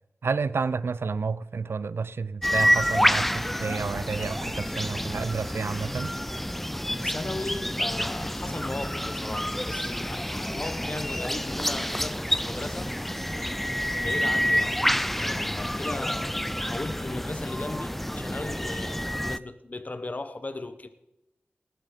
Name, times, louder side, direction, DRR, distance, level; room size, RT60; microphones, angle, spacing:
voice 1, 0.2-6.1, right 4 dB, 80° right, 0.6 m, -30 dB
sound 1, 2.4-19.4, equal, 5° left, 0.4 m, -28 dB
voice 2, 7.0-12.9 14.0-20.9, left 2 dB, 40° left, 1.0 m, -37 dB
18.5 x 9.3 x 5.2 m
wide cardioid pair, 55°, 4 cm